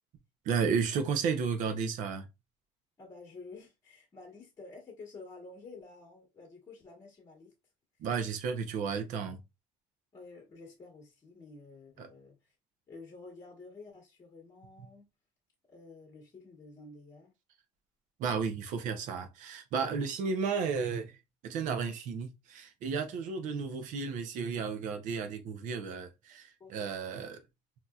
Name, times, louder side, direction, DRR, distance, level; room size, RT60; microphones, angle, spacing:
voice 1, 0.5-2.3 8.0-9.4 12.0-12.1 18.2-21.1 21.4-27.4, right 5 dB, 65° right, 0.8 m, -33 dB
voice 2, 3.0-7.5 10.1-12.5 12.9-15.1 15.7-17.3 19.8-20.0 26.6-26.9, left 3 dB, 25° left, 1.2 m, -50 dB
4.1 x 2.8 x 2.3 m
cardioid pair, 155°, 14 cm